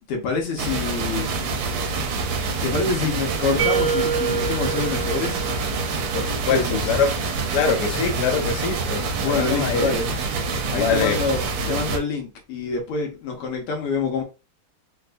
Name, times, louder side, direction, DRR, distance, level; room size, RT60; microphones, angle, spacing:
voice 1, 0.1-1.3 2.6-5.5 6.5-6.8 9.2-10.1 10.7-11.4 11.7-14.2, left 4 dB, 85° left, 1.8 m, -26 dB
sound 1, 0.6-12.0, right 3 dB, 85° right, 1.6 m, -26 dB
sound 2, 3.6-6.4, right 6 dB, 15° right, 0.5 m, -27 dB
voice 2, 6.1-7.2 7.5-10.0 10.7-11.2, left 6 dB, 65° left, 1.0 m, -24 dB
4.1 x 2.3 x 2.5 m
omnidirectional pair, 2.4 m